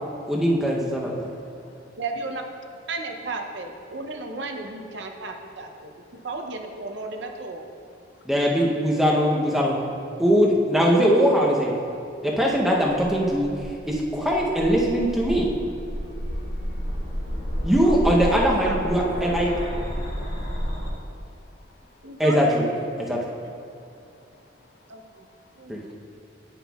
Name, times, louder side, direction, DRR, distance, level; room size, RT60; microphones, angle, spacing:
voice 1, 0.3-1.3 8.3-9.9 10.2-11.7 12.2-15.5 17.6-19.5 22.2-22.7 23.1-23.2, equal, ahead, 0.7 m, -21 dB
voice 2, 1.2-1.9 6.1-6.3 8.1-8.3 16.3-16.4 16.7-16.9 17.2-17.3 20.5-22.2 23.7-24.7 25.0-25.5, left 4 dB, 75° left, 0.4 m, -60 dB
voice 3, 2.0-2.4 2.9-7.6 17.8-19.6 22.0-22.7 23.4-23.5 24.9-25.3 25.6-25.7, right 3 dB, 65° right, 0.6 m, -34 dB
sound 1, 12.9-20.9, equal, 55° left, 1.1 m, -31 dB
9.5 x 6.0 x 2.3 m
head